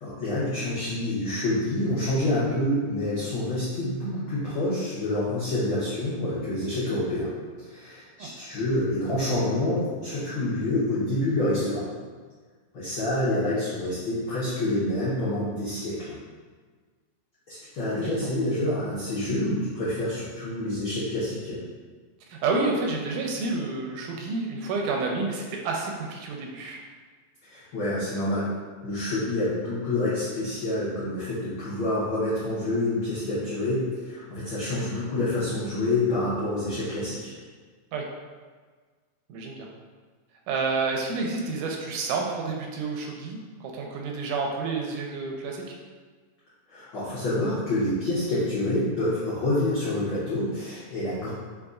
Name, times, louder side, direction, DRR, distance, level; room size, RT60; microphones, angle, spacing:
voice 1, 0.0-11.8 12.7-16.2 17.5-21.6 27.5-28.5 28.8-37.4 46.7-51.3, left 1 dB, 85° left, -11 dB, 1.1 m, -27 dB
voice 2, 17.9-18.3 22.3-26.8 37.9-38.1 39.3-39.7 40.5-45.8, right 3 dB, 85° right, 0 dB, 2.0 m, -29 dB
5.1 x 2.9 x 2.4 m, 1.5 s
omnidirectional pair, 3.6 m